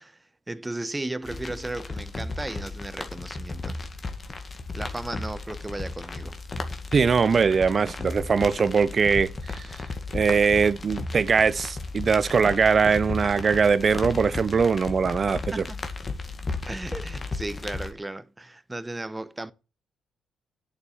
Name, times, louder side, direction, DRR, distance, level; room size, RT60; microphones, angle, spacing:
voice 1, 0.0-3.8 4.7-6.3 15.5-15.8 16.7-19.5, right 2 dB, 15° right, 0.9 m, -35 dB
sound 1, 1.2-17.9, left 3 dB, 30° left, 2.1 m, -34 dB
voice 2, 6.9-9.7 10.1-15.6, right 5 dB, 40° right, 0.6 m, -21 dB
8.5 x 7.4 x 7.0 m
cardioid pair, 90°, 0 cm